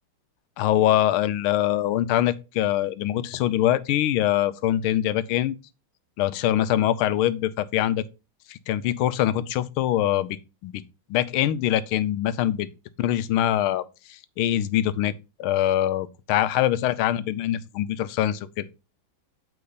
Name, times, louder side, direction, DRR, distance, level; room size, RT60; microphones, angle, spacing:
voice 1, 0.6-5.6 6.2-8.1 8.5-10.4 10.6-10.8 11.1-12.7 13.0-13.8 14.1-18.7, left 12 dB, 85° left, 1.5 m, -23 dB
8.4 x 4.4 x 4.0 m
omnidirectional pair, 2.3 m